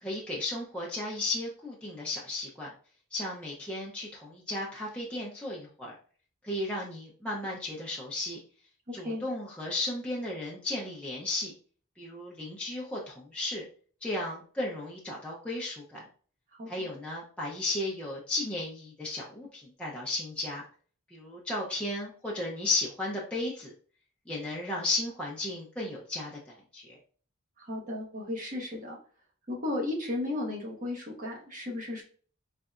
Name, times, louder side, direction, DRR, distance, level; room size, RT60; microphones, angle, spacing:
voice 1, 0.0-2.7 3.1-5.9 6.4-8.4 8.9-11.5 12.0-13.6 14.0-16.0 16.7-20.6 21.1-23.7 24.3-27.0, left 2 dB, 5° left, -5 dB, 0.6 m, -34 dB
voice 2, 27.6-29.0 29.5-32.0, left 2 dB, 40° right, -1 dB, 1.2 m, -34 dB
4.0 x 3.2 x 2.4 m, 0.43 s
head